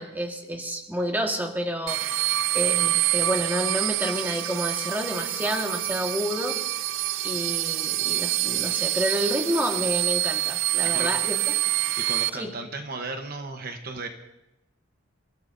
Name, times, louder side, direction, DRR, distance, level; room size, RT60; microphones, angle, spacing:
voice 1, 0.0-6.6 7.2-11.6 12.3-12.5, equal, 10° right, 2 dB, 1.5 m, -29 dB
sound 1, 1.9-12.3, right 16 dB, 75° right, 0.5 m, -26 dB
voice 2, 12.0-14.1, right 3 dB, 50° right, 5 dB, 1.0 m, -35 dB
29.0 x 14.5 x 2.7 m, 0.92 s
head